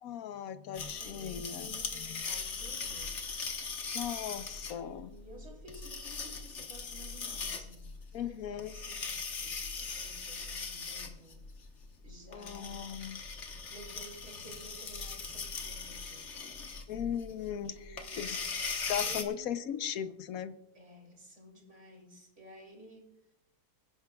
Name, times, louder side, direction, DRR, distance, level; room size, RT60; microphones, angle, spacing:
voice 1, 0.0-1.7 2.0-2.2 3.9-5.1 8.1-8.7 12.3-13.2 16.9-18.4 18.9-20.5, left 9 dB, 65° left, 11 dB, 1.1 m, -38 dB
voice 2, 0.6-3.4 4.7-11.4 12.0-13.0 13.7-16.7 17.6-18.6 18.8-19.6 20.7-23.2, right 1 dB, 45° right, 1 dB, 3.3 m, -53 dB
sound 1, 0.7-19.2, left 5 dB, 50° left, 1.4 m, -40 dB
24.0 x 10.5 x 2.3 m, 0.83 s
omnidirectional pair, 1.7 m